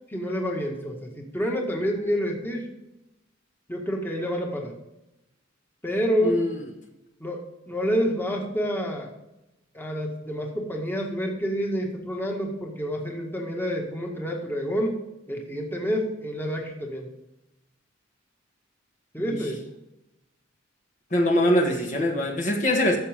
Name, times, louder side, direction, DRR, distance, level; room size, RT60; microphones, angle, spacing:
voice 1, 0.1-2.7 3.7-4.8 5.8-6.4 7.2-9.1 9.7-15.0 15.3-17.1 19.1-19.6, equal, 10° left, 0 dB, 1.8 m, -28 dB
voice 2, 6.2-6.6 19.3-19.4 21.1-23.0, left 1 dB, 40° left, 1 dB, 1.6 m, -23 dB
14.0 x 7.0 x 3.6 m, 0.92 s
head